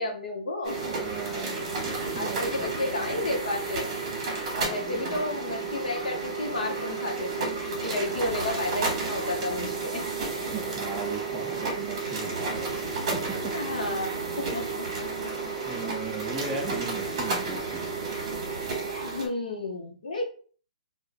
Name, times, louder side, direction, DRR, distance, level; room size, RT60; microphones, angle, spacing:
voice 1, 0.0-0.9 1.3-1.5 1.8-3.9 4.6-10.7 13.5-14.1 14.4-15.5 15.8-15.9 16.5-16.6 19.0-20.2, left 2 dB, 85° left, 1 dB, 1.0 m, -32 dB
sound 1, 0.6-19.3, right 4 dB, 35° right, 1.1 m, -32 dB
voice 2, 0.8-3.0 4.6-5.2 8.1-8.2 10.5-13.5 15.0-15.1 15.7-17.8, right 3 dB, 5° right, -1 dB, 0.4 m, -38 dB
3.9 x 2.4 x 2.2 m, 0.43 s
hypercardioid pair, 170°, 4 cm